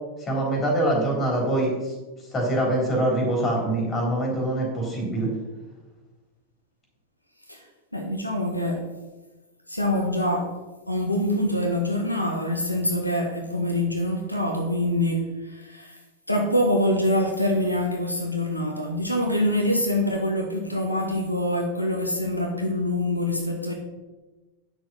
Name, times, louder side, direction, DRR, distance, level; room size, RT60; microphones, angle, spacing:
voice 1, 0.2-1.9 2.3-5.3, right 1 dB, 20° left, 0 dB, 3.7 m, -24 dB
voice 2, 7.9-8.8 9.7-10.5 10.9-16.0 16.3-23.7, left 1 dB, 85° left, 1 dB, 1.3 m, -25 dB
9.4 x 6.4 x 5.6 m, 1.2 s
figure-of-eight pair, 90°, 0 cm